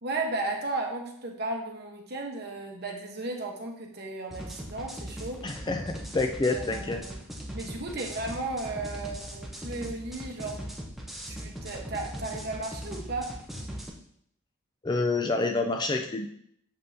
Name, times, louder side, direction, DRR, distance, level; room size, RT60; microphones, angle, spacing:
voice 1, 0.0-5.4 6.4-7.2 7.5-10.6 11.3-13.3, right 2 dB, 50° right, 1 dB, 1.0 m, -35 dB
sound 1, 4.3-13.9, equal, ahead, 0.7 m, -39 dB
voice 2, 5.4-7.0 14.8-16.3, left 3 dB, 20° left, 5 dB, 0.3 m, -28 dB
7.0 x 5.4 x 2.7 m, 0.69 s
head